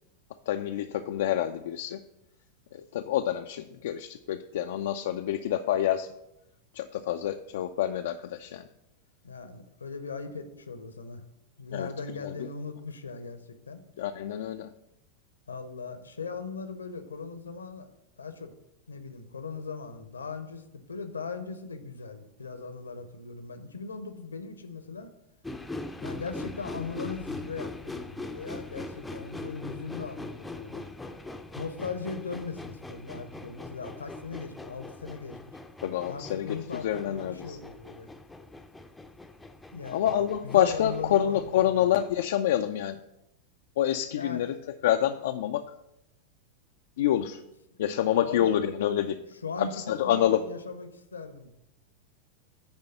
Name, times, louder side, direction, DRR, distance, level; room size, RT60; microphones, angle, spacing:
voice 1, 0.5-2.0 2.7-6.1 6.7-8.6 11.7-11.9 12.2-12.3 14.0-14.7 35.8-37.6 39.9-43.0 43.8-44.6 44.8-45.6 47.0-47.4 47.8-49.2 49.6-50.4, left 11 dB, 55° left, 7 dB, 0.3 m, -27 dB
voice 2, 9.2-11.2 11.6-13.8 15.5-17.9 18.2-18.5 18.9-25.1 26.0-30.8 31.6-35.6 36.1-38.1 39.7-41.9 44.1-44.4 48.2-48.6 49.4-51.5, left 4 dB, 75° left, 9 dB, 0.8 m, -39 dB
sound 1, 25.4-42.2, left 2 dB, 5° left, 0.5 m, -42 dB
9.8 x 3.4 x 6.6 m, 0.87 s
figure-of-eight pair, 90°, 0 cm